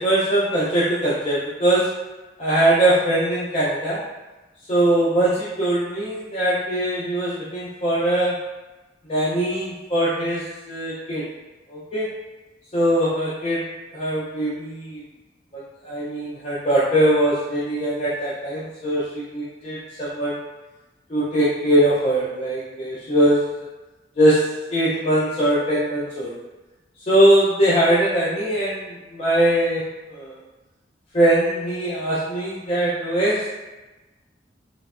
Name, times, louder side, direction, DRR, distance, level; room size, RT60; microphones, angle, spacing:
voice 1, 0.0-1.9 2.4-4.0 4.7-8.4 9.1-11.2 11.7-12.1 12.7-13.6 13.9-15.0 15.5-20.4 21.1-23.4 24.2-24.4 24.7-26.4 27.1-29.8 30.1-30.4 31.1-33.5, right 1 dB, 35° left, -9 dB, 0.5 m, -21 dB
3.1 x 2.1 x 2.4 m, 1.1 s
head